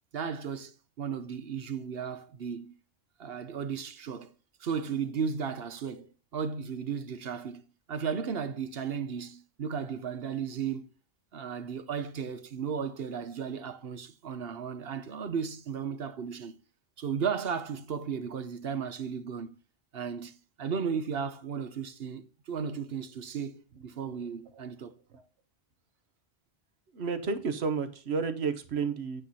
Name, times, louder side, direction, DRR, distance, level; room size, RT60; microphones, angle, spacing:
voice 1, 0.1-2.7 3.2-4.3 4.6-7.6 7.9-10.9 11.3-16.6 17.0-19.6 19.9-25.0, right 6 dB, 70° right, 1.1 m, -35 dB
voice 2, 26.9-29.2, right 5 dB, 90° right, 1.3 m, -32 dB
9.1 x 8.4 x 4.2 m
omnidirectional pair, 1.1 m